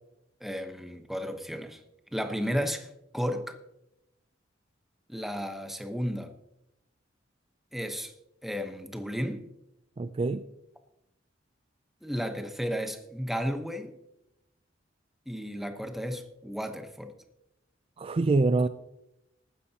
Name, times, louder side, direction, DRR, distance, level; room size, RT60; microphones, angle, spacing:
voice 1, 0.4-1.8 2.1-3.6 5.1-6.3 7.7-8.1 8.4-9.5 12.0-13.9 15.3-17.1, equal, ahead, 0.9 m, -33 dB
voice 2, 10.0-10.4 18.0-18.7, right 3 dB, 30° right, 0.3 m, -25 dB
19.0 x 9.8 x 2.8 m
head